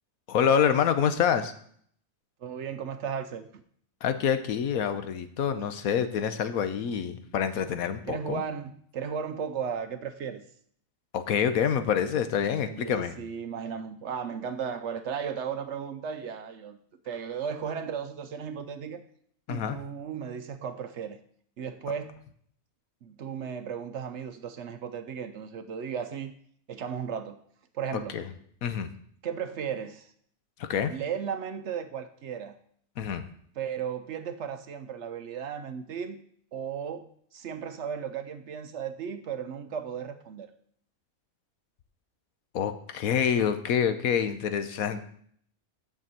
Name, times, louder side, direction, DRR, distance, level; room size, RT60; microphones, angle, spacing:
voice 1, 0.3-1.5 4.0-8.4 11.1-13.2 19.5-19.8 28.1-28.2 28.6-28.9 30.6-30.9 33.0-33.3 42.5-45.0, left 8 dB, 75° left, 10 dB, 1.2 m, -26 dB
voice 2, 2.4-3.5 8.1-10.4 12.7-16.8 17.1-19.0 19.5-21.2 21.6-22.2 23.0-26.3 26.7-27.4 27.7-28.2 29.2-30.1 30.9-32.6 33.6-36.2 36.5-40.5, right 7 dB, 60° right, 9 dB, 0.9 m, -35 dB
6.7 x 6.2 x 7.5 m, 0.63 s
omnidirectional pair, 1.5 m